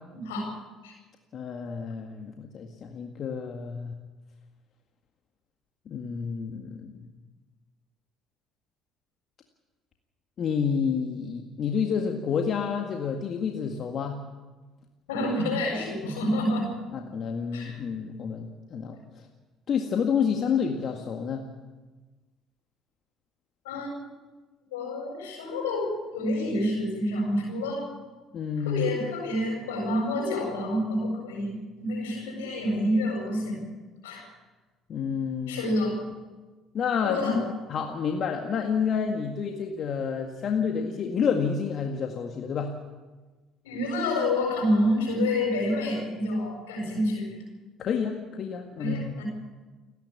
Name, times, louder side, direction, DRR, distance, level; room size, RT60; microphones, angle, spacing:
voice 1, 0.1-0.5 0.8-0.9 15.1-16.7 17.5-17.8 23.6-23.9 24.7-27.9 28.6-33.7 34.0-34.3 35.5-36.0 37.0-37.4 43.6-47.4 48.8-49.2, left 1 dB, 85° left, 0 dB, 7.8 m, -28 dB
voice 2, 1.3-3.9 5.9-7.1 10.4-14.2 16.9-19.0 19.7-21.4 28.3-28.8 34.9-35.7 36.7-37.4 37.7-42.7 47.8-49.2, left 6 dB, 50° left, 3 dB, 1.9 m, -29 dB
29.5 x 10.5 x 8.7 m, 1.3 s
hypercardioid pair, 60°, 0 cm